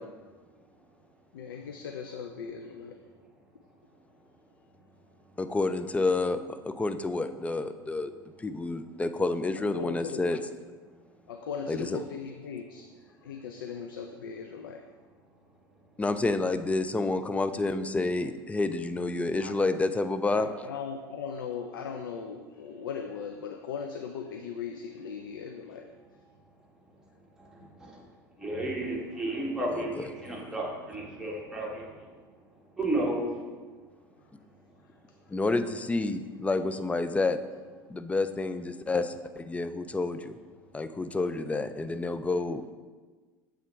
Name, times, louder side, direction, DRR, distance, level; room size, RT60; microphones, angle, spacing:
voice 1, 1.3-3.0 9.7-10.2 11.3-12.8 13.2-14.8 19.4-19.5 20.4-25.9, left 6 dB, 75° left, 5 dB, 0.4 m, -38 dB
voice 2, 5.4-8.1 8.4-10.4 11.7-12.0 16.0-20.5 29.7-30.1 35.3-37.4 37.9-40.3 40.7-42.7, left 3 dB, 10° left, 10 dB, 0.4 m, -29 dB
voice 3, 28.4-31.9 32.8-33.3, right 1 dB, 5° right, -3 dB, 1.6 m, -32 dB
7.4 x 3.5 x 4.5 m, 1.4 s
figure-of-eight pair, 75°, 12 cm